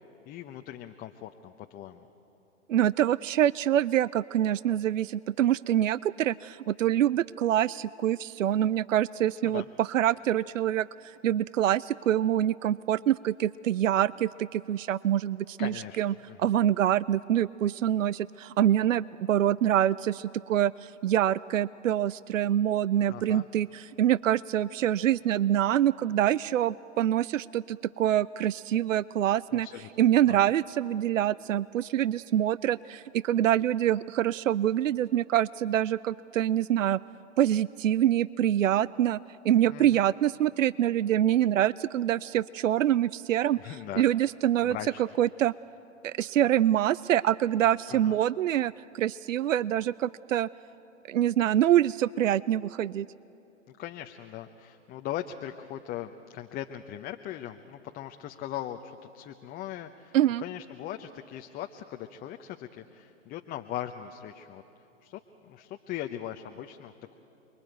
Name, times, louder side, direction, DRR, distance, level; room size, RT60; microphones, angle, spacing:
voice 1, 0.3-2.1 9.4-9.7 15.6-16.0 16.3-16.5 23.1-23.5 29.5-29.9 30.3-30.4 39.7-39.9 43.6-44.0 44.6-45.0 47.9-48.2 53.8-64.6 65.0-67.1, left 12 dB, 25° left, 5 dB, 0.8 m, -39 dB
voice 2, 2.7-29.7 30.0-37.0 37.4-39.2 39.4-44.8 45.2-45.5 46.0-50.5 51.1-53.1 60.1-60.4, right 11 dB, 80° right, 20 dB, 0.5 m, -25 dB
29.5 x 22.0 x 9.2 m, 3.0 s
hypercardioid pair, 115°, 38 cm